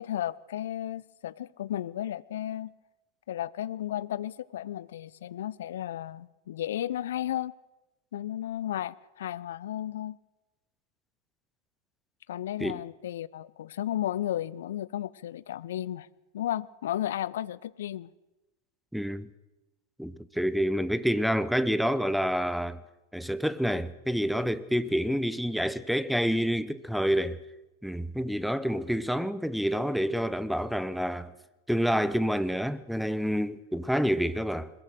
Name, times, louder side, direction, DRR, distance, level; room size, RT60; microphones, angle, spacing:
voice 1, 0.0-2.7 3.3-7.5 8.1-10.2 12.3-16.1 16.3-18.1, left 12 dB, 60° left, 0.6 m, -34 dB
voice 2, 18.9-19.3 20.0-22.8 23.1-27.4 27.8-31.3 31.7-34.7, equal, ahead, 0.9 m, -28 dB
22.0 x 21.5 x 6.5 m
figure-of-eight pair, 90°, 0 cm